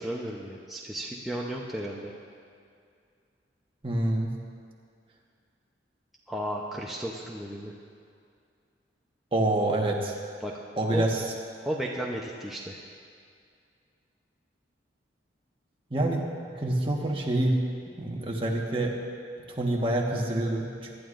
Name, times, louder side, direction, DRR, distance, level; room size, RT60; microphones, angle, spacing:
voice 1, 0.0-2.1 6.3-7.7 10.4-10.5 10.9-11.0 11.6-12.8, right 1 dB, ahead, -4 dB, 0.7 m, -34 dB
voice 2, 3.8-4.3 9.3-10.1 10.8-11.2 15.9-16.2 16.5-17.6 18.0-18.9 19.5-20.9, right 1 dB, 30° right, -1 dB, 1.4 m, -26 dB
24.0 x 11.5 x 2.6 m, 2.3 s
head